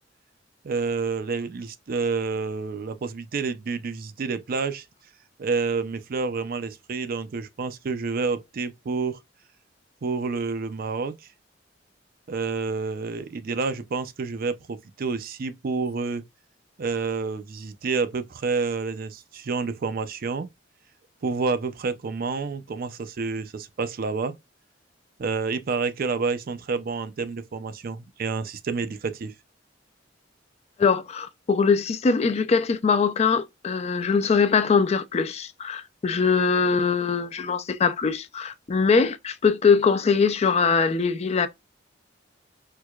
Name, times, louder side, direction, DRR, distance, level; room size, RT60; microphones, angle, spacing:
voice 1, 0.6-4.8 5.4-9.2 10.0-11.2 12.3-16.2 16.8-20.5 21.2-24.4 25.2-29.3, right 4 dB, 50° right, 0.4 m, -29 dB
voice 2, 30.8-41.5, left 5 dB, 35° left, 0.4 m, -22 dB
4.5 x 2.2 x 2.3 m
head